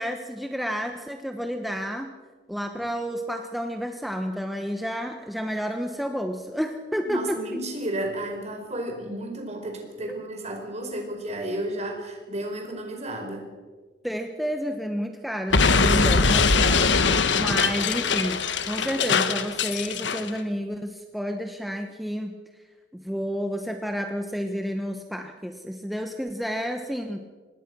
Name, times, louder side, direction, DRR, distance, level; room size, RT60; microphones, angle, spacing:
voice 1, 0.0-2.1 2.5-7.6 10.1-10.2 14.0-17.1 17.4-22.3 22.9-27.2, equal, ahead, 4 dB, 1.1 m, -30 dB
voice 2, 7.0-13.5, right 1 dB, 40° right, 3 dB, 4.8 m, -32 dB
Explosion, 15.5-20.3, left 4 dB, 80° left, 1.3 m, -22 dB
25.5 x 19.5 x 6.2 m, 1.4 s
head